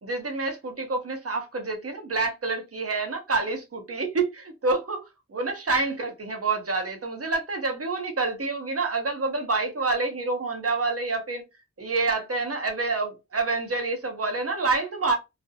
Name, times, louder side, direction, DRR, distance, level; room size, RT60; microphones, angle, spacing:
voice 1, 0.0-5.0 5.3-11.4 11.8-15.2, right 3 dB, 50° right, 0.8 m, -27 dB
2.4 x 2.0 x 2.7 m
wide cardioid pair, 65°, 30 cm